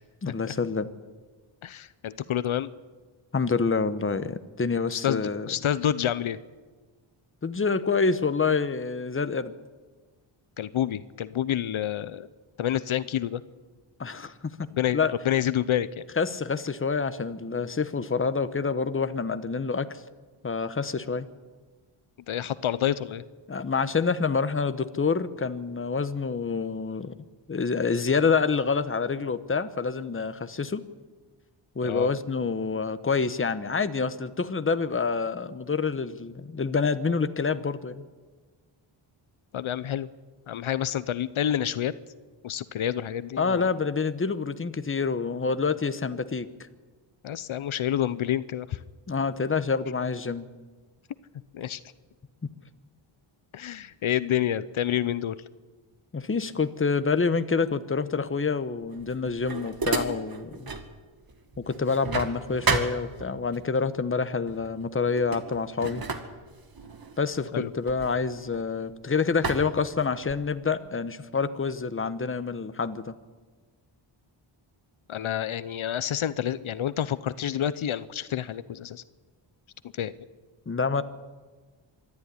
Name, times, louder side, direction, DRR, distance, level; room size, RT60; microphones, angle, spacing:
voice 1, 0.2-0.9 3.3-5.5 7.4-9.5 14.0-14.5 14.9-15.1 16.2-20.0 20.4-21.3 23.5-27.2 27.5-30.8 31.7-38.0 43.4-46.5 49.1-50.5 56.1-60.7 61.6-66.0 67.2-73.1 80.7-81.0, left 5 dB, 25° left, 12 dB, 1.1 m, -27 dB
voice 2, 1.6-2.7 4.9-6.4 10.6-12.3 12.6-13.4 14.7-15.0 15.2-16.0 22.3-23.2 31.8-32.1 39.5-40.1 40.5-41.9 42.4-43.7 47.2-48.8 51.5-51.8 53.5-55.4 67.5-67.7 75.1-79.0 79.9-80.1, left 10 dB, 75° left, 16 dB, 0.8 m, -28 dB
sound 1, 58.9-60.9 61.3-63.6 64.5-64.7 65.1-68.9 69.4-70.6, right 4 dB, 45° right, 2.1 m, -33 dB
25.0 x 12.5 x 9.9 m, 1.4 s
wide cardioid pair, 105°, 49 cm